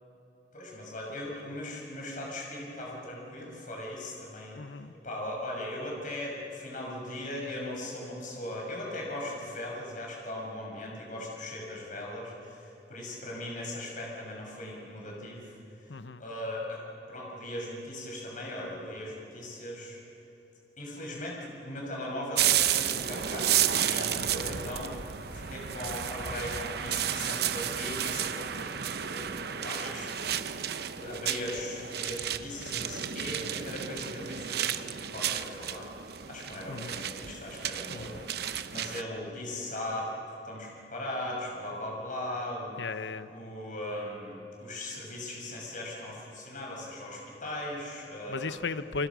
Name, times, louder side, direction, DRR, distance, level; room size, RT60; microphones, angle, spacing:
voice 1, 0.5-4.6 5.0-15.6 16.2-16.8 17.1-20.0 20.8-24.9 25.3-30.5 30.9-35.9 36.2-40.1 40.4-42.8 43.3-48.6, left 1 dB, 50° left, -2 dB, 6.3 m, -39 dB
voice 2, 4.6-4.9 15.9-16.2 24.2-24.5 36.7-37.1 37.9-38.2 42.8-43.3 48.3-49.1, left 4 dB, 90° left, 12 dB, 0.9 m, -36 dB
sound 1, 22.4-39.0, right 9 dB, 65° right, 0.8 m, -32 dB
28.5 x 25.0 x 6.3 m, 2.9 s
head